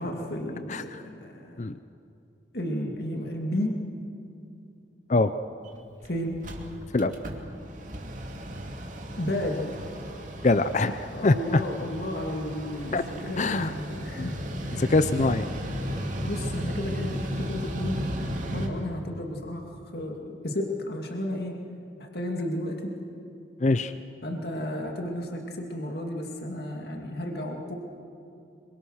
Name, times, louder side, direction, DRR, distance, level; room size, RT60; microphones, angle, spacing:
voice 1, 0.0-1.7 2.5-3.8 6.0-6.5 9.2-9.8 11.1-14.9 16.2-18.1 18.5-21.6 22.0-23.0 24.2-27.7, left 1 dB, 55° left, 2 dB, 2.4 m, -33 dB
voice 2, 0.7-1.0 1.6-1.7 5.1-5.3 6.9-7.1 10.4-11.6 12.9-13.0 13.4-13.7 14.2-14.3 14.8-15.5 23.6-23.9, left 2 dB, 40° left, 11 dB, 0.5 m, -23 dB
Mechanical fan, 5.7-5.8 6.0-6.1 6.3-18.7, equal, 40° right, 2.4 m, -35 dB
26.0 x 24.0 x 6.5 m, 2.7 s
head